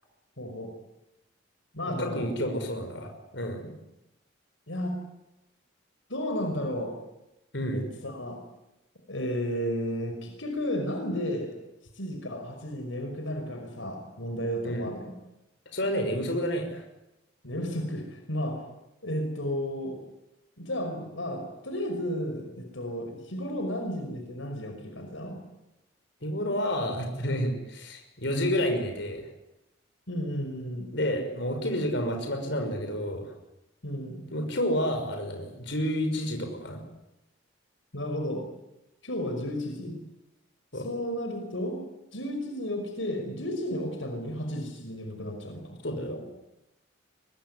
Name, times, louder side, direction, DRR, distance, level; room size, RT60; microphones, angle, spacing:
voice 1, 0.4-0.7 1.7-2.3 3.6-3.7 4.7-5.0 6.1-6.9 7.7-8.4 9.1-11.6 12.0-15.1 17.4-18.6 19.0-20.0 20.6-25.4 30.1-30.9 33.8-34.2 37.9-38.4 39.0-40.0 40.8-41.8 42.1-45.8, equal, 80° left, 4 dB, 5.5 m, -33 dB
voice 2, 1.9-3.6 7.5-7.8 14.6-14.8 15.7-16.8 26.2-29.2 30.9-33.3 34.3-36.8 40.7-40.9 45.8-46.2, equal, 65° left, 4 dB, 5.9 m, -30 dB
24.5 x 22.0 x 9.8 m, 0.93 s
head